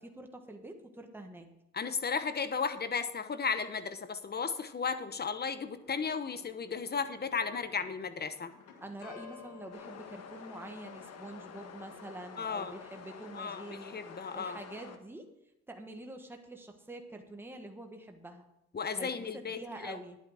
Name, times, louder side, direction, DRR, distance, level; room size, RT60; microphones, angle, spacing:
voice 1, 0.0-1.5 8.8-14.0 14.3-15.3 15.7-18.5 19.0-20.2, right 1 dB, 5° right, 4 dB, 1.4 m, -46 dB
voice 2, 1.7-8.5 12.4-12.8 13.3-14.6 18.7-20.0, left 5 dB, 35° left, 12 dB, 1.0 m, -35 dB
sound 1, 5.8-12.3, left 8 dB, 85° left, 1.7 m, -55 dB
sound 2, 9.7-15.0, left 6 dB, 55° left, 1.3 m, -49 dB
10.5 x 9.4 x 5.0 m, 0.85 s
cardioid pair, 90°, 30 cm